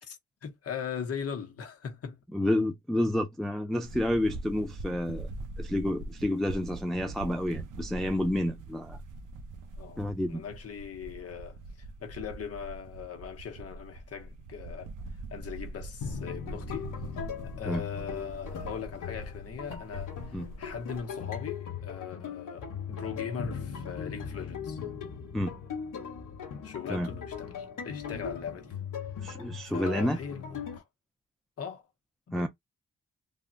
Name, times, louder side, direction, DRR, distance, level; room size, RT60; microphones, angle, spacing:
voice 1, 0.0-2.2 9.8-14.9 15.3-16.9 17.1-24.8 26.6-28.7 29.6-30.8 31.6-31.8 32.3-32.5, left 7 dB, 50° left, 0.8 m, -40 dB
voice 2, 2.3-5.3 5.6-9.0 10.0-10.4 17.7-17.8 20.3-20.5 25.3-25.5 26.9-27.1 29.2-30.2 32.3-32.5, left 1 dB, ahead, 0.3 m, -29 dB
sound 1, 3.8-21.0, right 2 dB, 75° right, 0.7 m, -43 dB
sound 2, 16.0-30.8, left 7 dB, 85° left, 0.9 m, -39 dB
3.5 x 2.0 x 2.4 m
wide cardioid pair, 145°, 31 cm